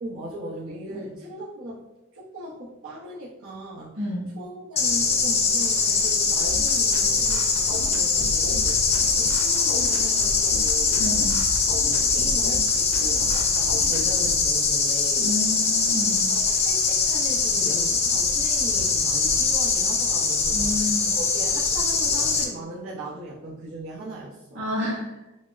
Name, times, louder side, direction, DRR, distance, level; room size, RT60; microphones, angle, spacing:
voice 1, 0.0-1.8 2.1-4.0 4.4-11.0 11.8-15.3 15.8-24.6, right 1 dB, 90° right, -9 dB, 0.8 m, -38 dB
voice 2, 4.0-4.3 11.0-11.3 15.2-16.2 20.5-21.1 24.5-25.1, left 2 dB, 60° right, -5 dB, 1.4 m, -29 dB
sound 1, 4.8-22.4, left 4 dB, 30° left, 0.5 m, -22 dB
sound 2, 6.4-14.4, left 1 dB, 75° left, 0.6 m, -36 dB
6.1 x 2.0 x 2.4 m, 0.98 s
head